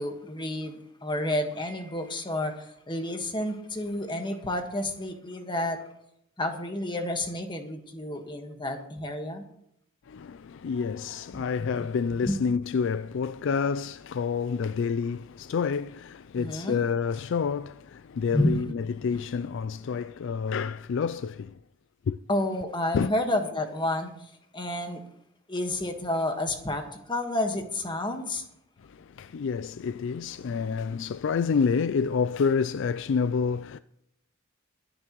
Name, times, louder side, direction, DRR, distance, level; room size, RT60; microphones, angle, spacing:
voice 1, 0.0-5.8 6.4-9.4 11.3-11.4 12.3-12.4 16.3-16.8 18.3-18.6 22.3-25.0 25.5-28.4, left 1 dB, 25° left, 1.5 m, -30 dB
voice 2, 10.1-21.6 22.1-22.2 22.9-23.1 28.8-33.8, left 5 dB, 60° left, 0.3 m, -28 dB
22.5 x 9.8 x 3.1 m
head